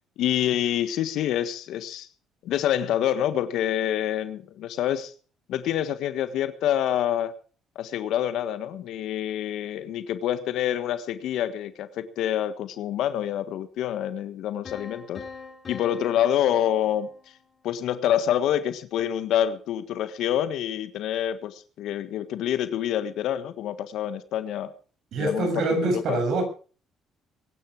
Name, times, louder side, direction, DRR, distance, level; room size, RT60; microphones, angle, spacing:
voice 1, 0.2-2.1 2.4-5.1 5.5-7.3 7.7-15.2 15.7-17.1 17.6-24.7 25.2-26.2, left 11 dB, 75° left, 11 dB, 1.5 m, -27 dB
sound 1, 14.7-17.6, left 5 dB, 40° left, 8.0 m, -43 dB
voice 2, 25.1-26.4, right 2 dB, 70° right, 5 dB, 7.3 m, -25 dB
22.5 x 10.5 x 4.8 m, 0.40 s
supercardioid pair, 80°, 0 cm